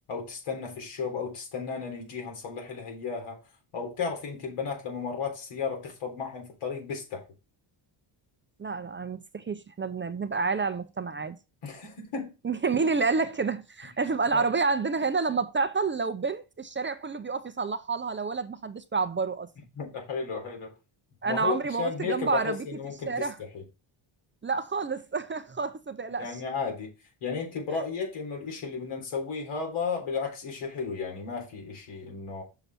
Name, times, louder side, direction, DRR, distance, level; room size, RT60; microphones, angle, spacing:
voice 1, 0.1-3.4 3.7-7.3 11.6-12.3 14.3-14.5 19.8-20.7 21.2-23.6 26.2-26.9 27.2-32.4, left 5 dB, 85° left, 3.8 m, -34 dB
voice 2, 8.6-11.4 12.4-19.5 21.2-22.7 23.1-23.4 24.4-26.3, right 4 dB, 25° right, 0.6 m, -29 dB
6.9 x 5.8 x 4.2 m
cardioid pair, 110°, 49 cm